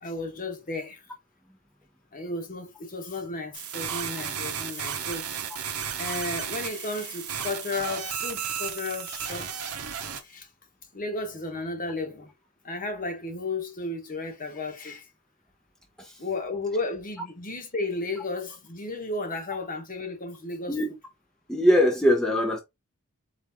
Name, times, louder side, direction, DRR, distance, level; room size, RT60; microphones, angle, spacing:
voice 1, 0.0-1.0 2.1-5.3 6.0-9.8 10.2-10.5 10.9-12.3 12.6-15.1 16.2-20.8, left 2 dB, 40° left, 1.1 m, -33 dB
sound 1, 3.5-10.2, right 8 dB, 80° right, 0.9 m, -33 dB
voice 2, 21.5-22.6, equal, 5° left, 0.7 m, -22 dB
4.2 x 3.2 x 3.5 m
head